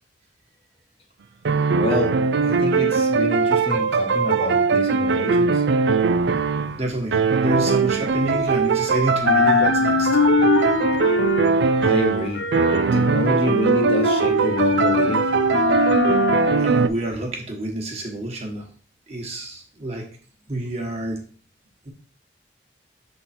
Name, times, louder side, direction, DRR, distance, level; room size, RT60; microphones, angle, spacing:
sound 1, 1.4-6.8 7.1-16.9, right 5 dB, 70° right, 0.4 m, -20 dB
voice 1, 1.7-2.2 2.4-5.6 11.8-12.4 12.9-15.3, left 2 dB, 30° left, 2 dB, 0.9 m, -27 dB
sound 2, 6.0-8.8 9.1-17.3, left 5 dB, 75° left, 0.5 m, -24 dB
voice 2, 6.8-10.2 16.6-18.7 19.1-20.1 20.5-21.2 21.8-21.9, right 1 dB, 35° right, 1 dB, 1.3 m, -28 dB
6.6 x 3.9 x 4.3 m, 0.40 s
head